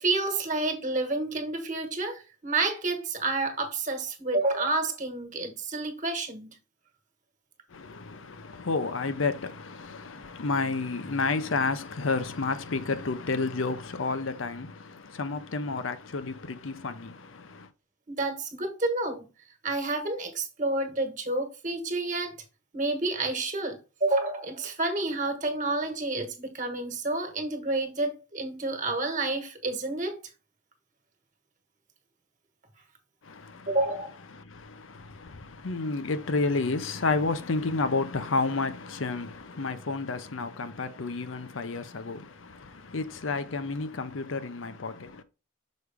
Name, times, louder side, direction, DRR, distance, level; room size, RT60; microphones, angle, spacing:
voice 1, 0.0-6.5 18.1-19.3 19.6-22.3 22.7-30.2 33.7-34.1, right 2 dB, 40° right, 1.4 m, -29 dB
voice 2, 7.7-17.7 33.2-33.8 34.3-45.2, left 3 dB, 70° left, 0.7 m, -31 dB
6.3 x 4.9 x 3.5 m
head